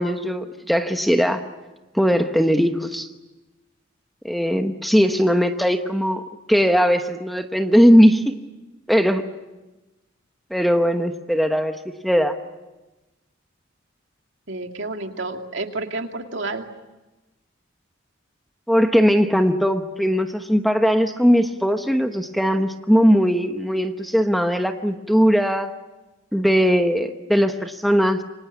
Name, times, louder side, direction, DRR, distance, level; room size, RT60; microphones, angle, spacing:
voice 1, 0.0-1.4 1.9-3.1 4.2-6.2 6.5-8.3 8.9-9.2 10.5-11.8 12.0-12.4 18.7-25.7 26.3-28.2, equal, ahead, 6 dB, 1.1 m, -19 dB
voice 2, 14.5-16.7, right 2 dB, 65° right, 4 dB, 2.5 m, -30 dB
27.5 x 25.5 x 8.5 m, 1.1 s
head